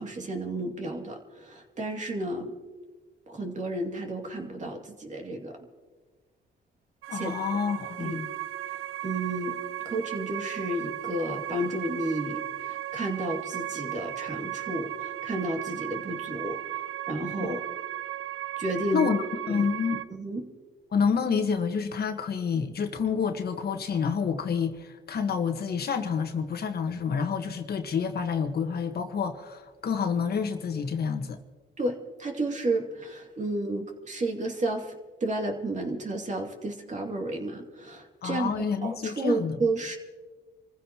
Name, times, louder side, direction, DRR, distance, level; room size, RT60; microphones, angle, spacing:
voice 1, 0.0-2.5 3.3-5.6 7.1-7.3 8.0-8.2 8.7-9.6 9.8-17.6 18.6-19.1 19.5-19.7 20.1-20.5 31.8-34.9 35.2-40.0, right 2 dB, 40° right, 2.5 m, -32 dB
sound 1, 7.0-20.0, right 13 dB, 85° right, 0.6 m, -36 dB
voice 2, 7.1-8.3 17.4-17.6 18.9-19.2 19.5-20.0 20.9-31.4 38.2-39.6, left 6 dB, 50° left, 1.5 m, -28 dB
27.0 x 15.0 x 3.0 m
cardioid pair, 90°, 20 cm